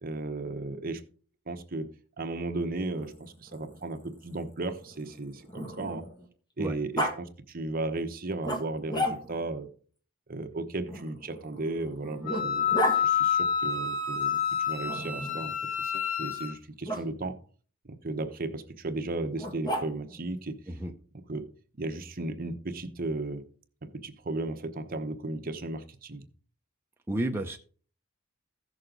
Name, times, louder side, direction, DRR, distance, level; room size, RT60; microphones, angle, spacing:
voice 1, 0.0-1.0 1.5-1.9 2.2-6.0 6.6-9.7 10.3-12.6 13.0-17.4 17.8-20.6 21.3-21.5 21.7-23.4 23.8-26.3, right 2 dB, 45° right, 7 dB, 1.0 m, -35 dB
Growling, 2.9-6.3 7.0-7.2 8.4-9.5 10.9-13.0 14.9-15.5 16.9-17.0 19.4-20.2, equal, 20° left, 1.7 m, -34 dB
Wind instrument woodwind instrument, 12.3-16.5, left 7 dB, 85° left, 2.4 m, -28 dB
voice 2, 27.1-27.6, right 1 dB, 10° right, 2 dB, 0.7 m, -31 dB
15.0 x 6.4 x 3.9 m, 0.43 s
head